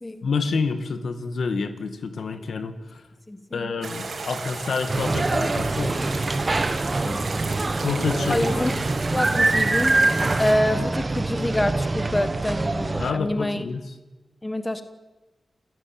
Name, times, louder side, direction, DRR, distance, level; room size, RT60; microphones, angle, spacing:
voice 1, 0.2-3.0 3.5-6.0 7.8-8.8 13.0-13.8, left 4 dB, 75° left, 8 dB, 2.2 m, -28 dB
voice 2, 3.3-3.7 7.0-7.2 8.3-8.7 9.1-10.0 10.4-13.7 14.4-14.8, left 1 dB, 15° left, 9 dB, 1.4 m, -26 dB
sound 1, 3.8-10.5, right 4 dB, 60° right, 5.9 m, -34 dB
sound 2, 4.9-13.1, right 2 dB, 25° right, 1.3 m, -24 dB
30.0 x 16.0 x 9.1 m, 1.1 s
wide cardioid pair, 155°, 0 cm